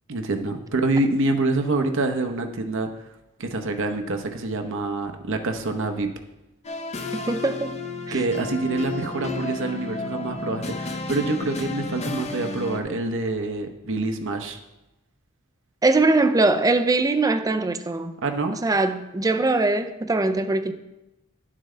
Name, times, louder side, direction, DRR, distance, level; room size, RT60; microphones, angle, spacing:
voice 1, 0.1-2.9 3.4-6.1 8.1-14.6 18.2-18.5, right 2 dB, 60° right, 5 dB, 0.9 m, -26 dB
sound 1, 6.6-12.8, left 3 dB, 30° left, 0.7 m, -32 dB
voice 2, 7.1-7.8 8.1-8.2 15.8-18.1 18.6-20.7, right 2 dB, 15° right, 9 dB, 0.5 m, -21 dB
11.0 x 7.5 x 3.3 m, 0.95 s
head